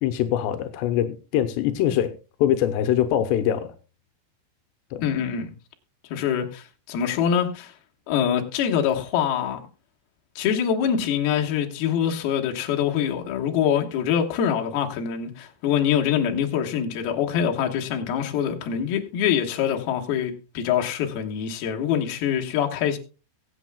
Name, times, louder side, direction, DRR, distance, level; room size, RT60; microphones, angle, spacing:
voice 1, 0.0-2.1 2.4-3.7 4.9-5.1, left 11 dB, 85° left, 3.0 m, -23 dB
voice 2, 5.0-5.5 6.1-7.7 8.1-9.6 10.4-23.0, left 8 dB, 70° left, 3.1 m, -24 dB
22.5 x 8.4 x 2.2 m
omnidirectional pair, 4.8 m